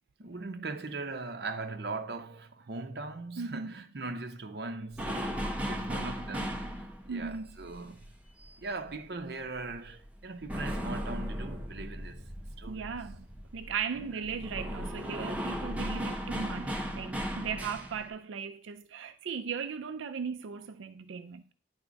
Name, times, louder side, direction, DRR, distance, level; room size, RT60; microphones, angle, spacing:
voice 1, 0.2-8.1 8.6-12.3 12.6-12.9, right 3 dB, 55° right, 0.7 m, -40 dB
voice 2, 3.4-3.7 7.1-7.5 12.7-13.3 13.5-21.4, right 6 dB, 85° right, 0.4 m, -37 dB
sound 1, 4.9-9.2 9.5-18.1, equal, 5° right, 0.8 m, -37 dB
9.8 x 3.5 x 5.1 m
head